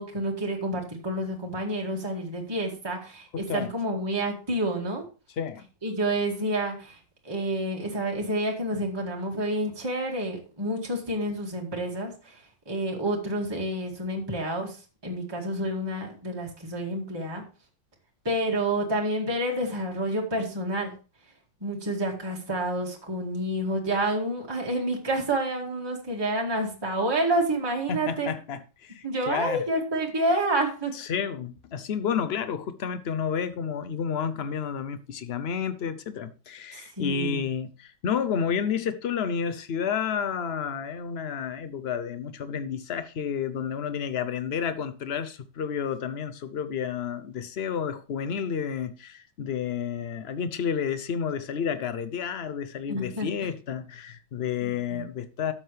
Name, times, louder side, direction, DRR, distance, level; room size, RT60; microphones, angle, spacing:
voice 1, 0.0-5.0 5.8-7.0 7.2-17.4 18.2-20.9 21.6-28.3 29.0-30.9 36.7-37.4 52.9-53.5 54.6-55.0, right 1 dB, 15° right, 2.0 m, -29 dB
voice 2, 3.3-3.7 5.4-5.6 27.9-29.6 30.9-55.5, left 7 dB, 70° left, 0.6 m, -30 dB
12.0 x 7.5 x 3.2 m
omnidirectional pair, 2.0 m